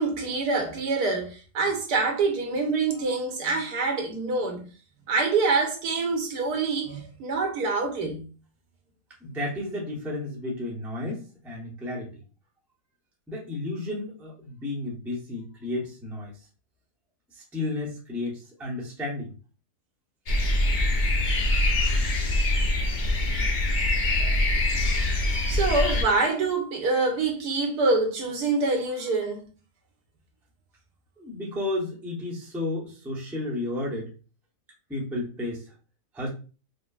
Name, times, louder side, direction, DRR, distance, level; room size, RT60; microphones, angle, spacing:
voice 1, 0.0-4.7 5.1-8.3 25.3-29.4, right 3 dB, 75° right, 1.4 m, -26 dB
voice 2, 9.2-12.2 13.3-16.4 17.3-19.3 31.2-34.1 34.9-35.7 36.1-36.3, left 2 dB, ahead, 0.5 m, -32 dB
sound 1, 20.3-26.0, left 1 dB, 60° left, 0.5 m, -24 dB
5.0 x 2.1 x 2.4 m
omnidirectional pair, 1.8 m